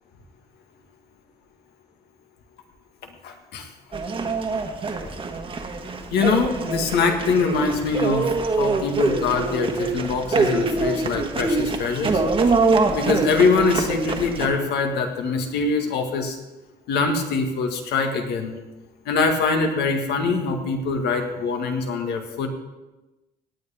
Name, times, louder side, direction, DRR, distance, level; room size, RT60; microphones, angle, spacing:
voice 1, 3.2-3.7 6.1-12.2 12.9-16.4 16.9-18.6 19.1-22.5, left 4 dB, 75° left, 4 dB, 1.8 m, -23 dB
sound 1, 3.9-14.5, right 3 dB, 30° right, 1.4 m, -24 dB
17.5 x 9.4 x 3.6 m, 1.1 s
cardioid pair, 110°, 17 cm